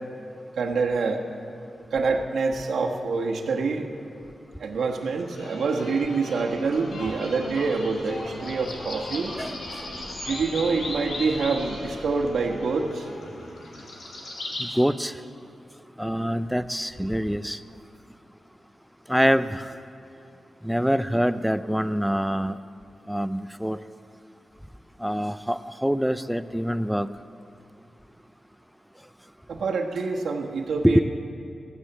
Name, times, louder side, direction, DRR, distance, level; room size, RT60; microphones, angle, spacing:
voice 1, 0.6-1.2 1.9-3.9 4.6-9.3 10.3-13.0 29.5-31.0, right 4 dB, 90° right, 1 dB, 1.3 m, -26 dB
sound 1, 5.0-14.7, left 1 dB, 75° left, 2.5 m, -37 dB
voice 2, 14.8-15.1 16.0-17.6 19.1-19.5 20.7-22.6 23.1-23.8 25.0-27.1 30.8-31.0, equal, ahead, 13 dB, 0.3 m, -24 dB
15.0 x 9.7 x 7.1 m, 2.7 s
wide cardioid pair, 145°, 0 cm